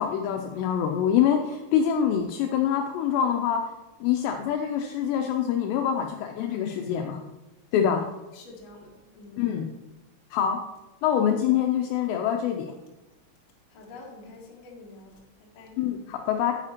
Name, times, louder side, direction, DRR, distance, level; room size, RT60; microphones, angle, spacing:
voice 1, 0.0-3.6 4.0-7.2 7.7-8.1 9.4-9.7 10.3-10.6 11.0-12.7 15.8-16.5, left 9 dB, 90° left, 4 dB, 2.4 m, -25 dB
voice 2, 8.3-9.5 13.7-15.8, left 3 dB, 60° left, -2 dB, 1.7 m, -47 dB
9.8 x 8.9 x 2.9 m, 1.1 s
omnidirectional pair, 5.5 m